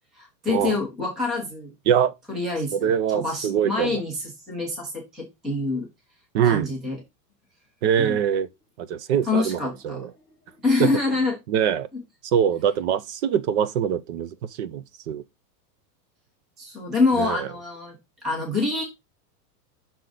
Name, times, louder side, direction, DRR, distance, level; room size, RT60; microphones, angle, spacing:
voice 1, 0.1-1.7 2.3-5.9 6.4-7.0 8.0-8.2 9.3-10.1 10.6-11.4 16.6-18.0 18.2-18.8, left 3 dB, ahead, 0.4 m, -26 dB
voice 2, 2.7-4.0 6.3-6.7 7.8-8.5 8.8-9.6 9.8-10.1 10.8-10.9 11.5-11.9 12.3-14.3 14.6-15.2 17.2-17.5, right 8 dB, 45° right, 0.6 m, -23 dB
5.8 x 3.9 x 4.8 m
supercardioid pair, 155°, 49 cm